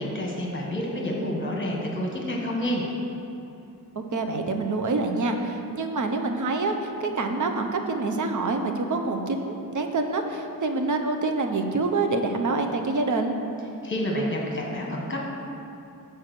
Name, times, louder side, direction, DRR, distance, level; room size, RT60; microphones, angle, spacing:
voice 1, 0.0-2.8 13.8-15.2, equal, 35° left, -1 dB, 1.3 m, -29 dB
voice 2, 4.1-13.4, right 3 dB, 55° right, 5 dB, 0.7 m, -26 dB
7.0 x 4.7 x 6.7 m, 2.8 s
wide cardioid pair, 120°, 35 cm